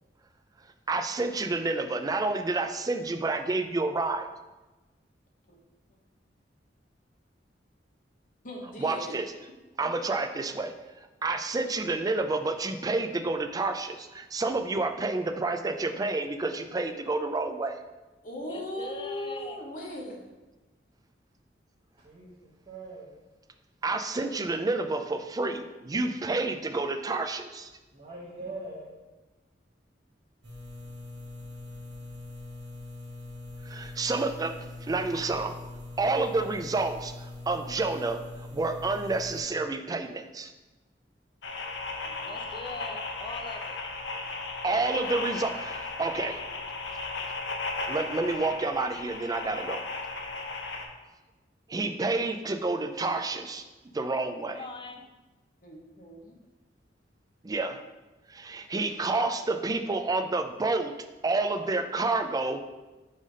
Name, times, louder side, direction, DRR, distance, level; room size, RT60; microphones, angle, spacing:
voice 1, 0.9-4.3 8.8-9.3 9.8-10.7 11.2-17.8 23.8-27.7 33.6-34.5 34.8-35.6 36.0-40.5 44.6-46.4 47.9-49.8 51.7-53.6 53.9-54.6 57.4-57.8 58.3-60.9 61.2-62.6, right 3 dB, 20° right, 7 dB, 0.4 m, -29 dB
voice 2, 8.4-9.1 18.2-20.2 42.0-42.3 55.6-56.4, left 1 dB, 50° left, -1 dB, 1.0 m, -39 dB
voice 3, 18.5-20.0 42.3-43.8 54.5-55.1, left 2 dB, 30° left, 3 dB, 0.6 m, -41 dB
voice 4, 22.0-23.1 27.9-28.9, right 2 dB, 35° right, -6 dB, 1.0 m, -42 dB
sound 1, 30.4-39.4, left 2 dB, 80° right, 1.3 m, -42 dB
sound 2, 41.4-50.9, left 3 dB, 80° left, 0.7 m, -36 dB
5.5 x 3.3 x 5.3 m, 1.1 s
head